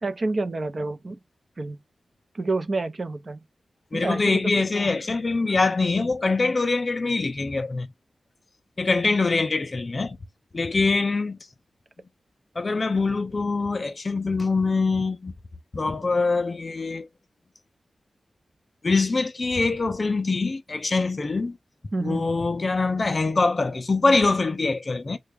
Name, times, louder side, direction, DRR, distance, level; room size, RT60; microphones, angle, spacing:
voice 1, 0.0-1.2 1.6-1.8 2.3-3.4 3.9-4.4 4.7-4.9 21.9-22.3, right 3 dB, 45° right, 0.6 m, -28 dB
voice 2, 3.9-7.9 8.8-10.2 10.5-11.4 12.6-15.3 15.7-17.1 18.8-21.6 22.0-25.2, left 3 dB, 40° left, 0.4 m, -24 dB
3.4 x 2.2 x 3.3 m
wide cardioid pair, 95°, 0 cm